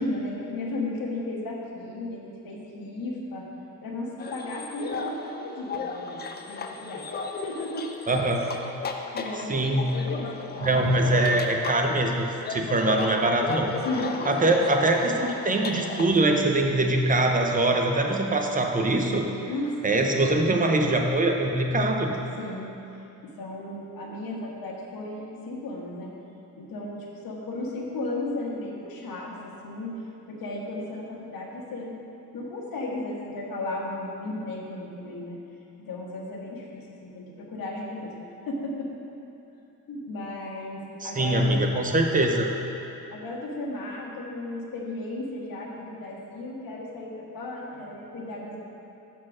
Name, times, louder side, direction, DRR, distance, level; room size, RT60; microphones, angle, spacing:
voice 1, 0.0-3.5 3.8-7.0 7.4-8.3 9.1-11.4 13.8-14.6 19.5-20.0 22.4-22.8 23.2-26.1 26.6-30.0 30.3-32.0 32.3-35.4 35.8-38.1 38.5-38.9 39.9-41.6 43.1-48.6, left 2 dB, 65° left, -2 dB, 1.3 m, -35 dB
sound 1, 4.2-16.2, left 4 dB, 30° left, 0.4 m, -35 dB
voice 2, 8.1-8.5 9.5-9.9 10.6-13.7 14.3-19.3 19.8-22.2 41.0-42.5, right 2 dB, 20° right, 2 dB, 0.7 m, -23 dB
6.2 x 4.3 x 6.0 m, 2.8 s
cardioid pair, 115°, 37 cm